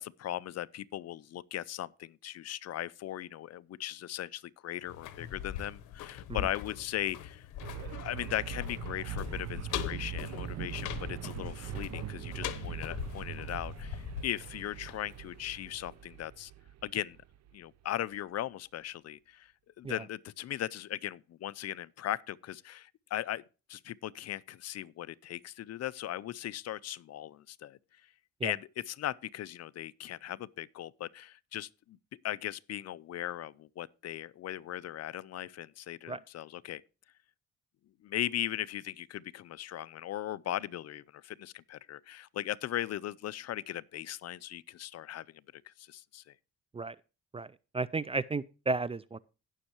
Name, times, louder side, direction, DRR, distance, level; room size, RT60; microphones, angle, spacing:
voice 1, 0.0-7.5 7.8-16.5 16.8-17.2 17.5-19.5 19.8-23.4 23.7-27.8 28.4-32.0 32.2-36.8 38.0-46.3, left 12 dB, 55° left, 0.5 m, -38 dB
sound 1, 4.8-15.6 15.9-16.0, left 10 dB, 85° left, 1.0 m, -41 dB
sound 2, 7.6-17.5, right 12 dB, 60° right, 0.7 m, -42 dB
voice 2, 47.3-49.2, right 3 dB, 20° right, 0.4 m, -34 dB
17.0 x 6.4 x 3.0 m
cardioid pair, 90°, 30 cm